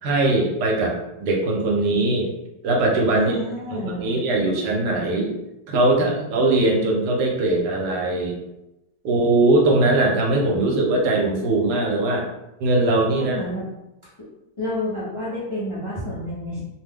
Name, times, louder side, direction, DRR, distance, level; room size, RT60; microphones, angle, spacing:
voice 1, 0.0-1.0 1.2-2.3 2.6-3.4 3.7-5.3 5.7-8.4 9.0-12.2 12.6-13.4, right 2 dB, 75° right, 0 dB, 1.2 m, -20 dB
voice 2, 3.1-4.1 13.1-13.6 14.6-16.6, left 1 dB, 40° left, -8 dB, 0.4 m, -29 dB
2.8 x 2.2 x 3.4 m, 0.91 s
omnidirectional pair, 1.9 m